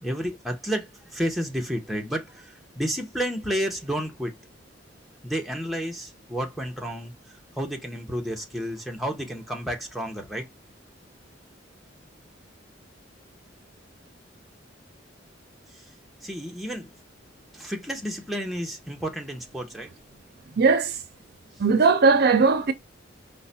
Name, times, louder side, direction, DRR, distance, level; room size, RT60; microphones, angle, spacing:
voice 1, 0.0-4.3 5.2-7.1 7.6-10.5 16.2-16.9 17.5-19.9, equal, ahead, 0.8 m, -31 dB
voice 2, 20.6-21.0 21.6-22.7, right 4 dB, 55° right, 0.6 m, -19 dB
4.7 x 2.2 x 4.1 m
head